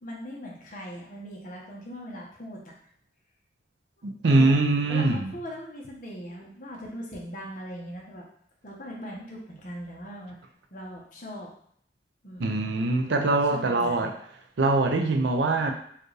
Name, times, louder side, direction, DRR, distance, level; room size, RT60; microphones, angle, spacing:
voice 1, 0.0-2.7 4.2-8.2 8.6-10.4 10.7-11.5 12.2-12.6 13.5-14.1, equal, 45° left, -2 dB, 0.9 m, -40 dB
voice 2, 4.0-5.3 12.4-14.1 14.6-15.7, right 2 dB, 70° right, 4 dB, 0.5 m, -23 dB
4.4 x 2.5 x 3.2 m, 0.64 s
head